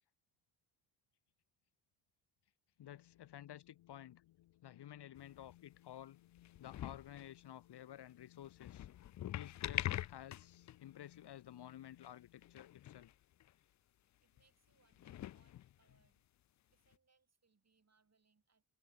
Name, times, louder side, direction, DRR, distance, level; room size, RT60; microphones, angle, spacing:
Wind, 2.8-12.8, left 15 dB, 75° left, 1.9 m, -66 dB
voice 1, 2.8-4.2 4.6-6.2 6.6-8.9 9.3-13.1, left 11 dB, 55° left, 1.0 m, -53 dB
sound 1, 5.2-5.8 6.4-7.3 8.4-10.8 11.1-11.2 11.7-11.8 12.0-12.1 12.4-13.1 13.4-13.5 14.4-14.5 14.9-16.1 16.9-17.0, left 12 dB, 40° left, 0.4 m, -44 dB
voice 2, 14.0-16.3 16.7-18.6, right 4 dB, 30° right, 5.6 m, -77 dB
supercardioid pair, 65°, 48 cm